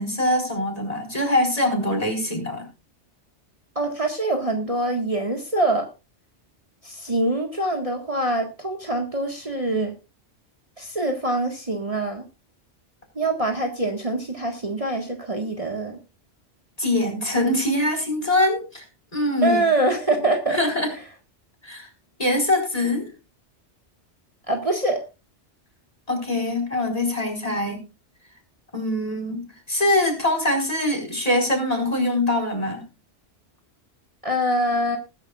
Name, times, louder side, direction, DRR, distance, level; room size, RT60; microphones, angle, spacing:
voice 1, 0.0-2.7 16.8-18.8 19.1-19.6 20.5-20.9 21.6-21.9 22.2-23.1 26.1-27.8 28.7-32.8, left 1 dB, 35° left, 3 dB, 4.7 m, -23 dB
voice 2, 3.8-5.9 6.8-9.9 10.8-12.2 13.2-16.0 19.4-20.6 24.5-25.0 34.2-35.0, right 1 dB, 30° right, 3 dB, 1.7 m, -24 dB
20.5 x 10.5 x 2.4 m, 0.28 s
omnidirectional pair, 1.2 m